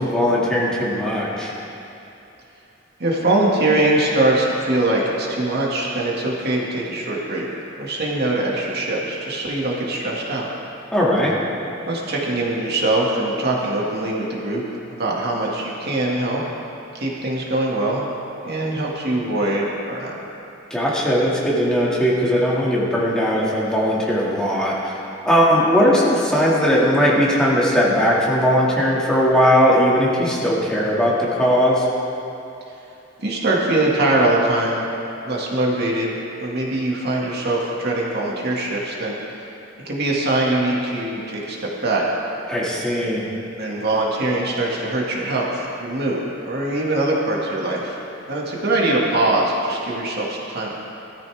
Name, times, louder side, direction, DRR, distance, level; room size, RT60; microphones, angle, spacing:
voice 1, 0.0-1.5 10.9-11.3 20.7-24.9 25.3-31.9 42.5-43.3, equal, 5° left, -6 dB, 2.2 m, -18 dB
voice 2, 3.0-7.5 7.8-10.5 11.9-14.6 15.0-16.4 16.9-18.0 18.4-20.1 33.2-34.8 35.3-36.1 36.4-39.5 39.9-42.0 43.6-48.0 48.3-50.7, right 2 dB, 55° right, -3 dB, 2.1 m, -22 dB
19.0 x 13.5 x 3.6 m, 2.8 s
head